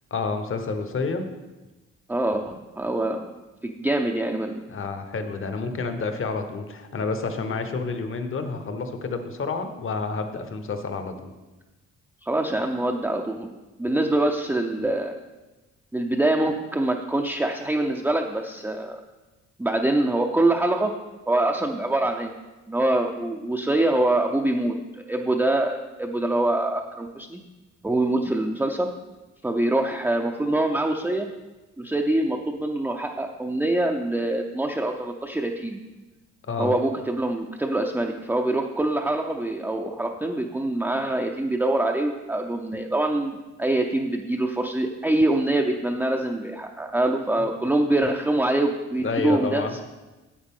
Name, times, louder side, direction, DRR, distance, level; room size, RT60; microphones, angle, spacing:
voice 1, 0.1-1.3 4.7-11.3 36.5-36.8 49.0-49.8, left 4 dB, 45° left, 7 dB, 1.1 m, -29 dB
voice 2, 2.1-3.3 3.6-4.6 12.2-15.1 15.9-19.0 19.6-20.9 21.3-22.3 22.7-27.4 27.8-28.9 29.4-31.3 31.8-35.8 36.6-49.8, right 1 dB, 5° right, 1 dB, 0.6 m, -24 dB
8.8 x 7.9 x 3.7 m, 1.1 s
cardioid pair, 90°, 30 cm